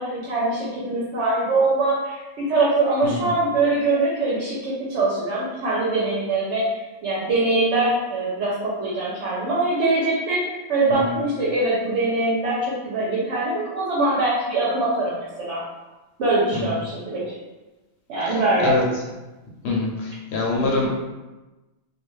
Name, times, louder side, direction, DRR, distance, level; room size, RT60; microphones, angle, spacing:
voice 1, 0.0-15.6 16.2-17.3 18.1-18.7, right 2 dB, 80° right, -7 dB, 1.0 m, -23 dB
voice 2, 18.2-18.8 19.6-20.9, left 3 dB, 70° left, -2 dB, 0.9 m, -25 dB
2.4 x 2.3 x 3.1 m, 1.1 s
omnidirectional pair, 1.2 m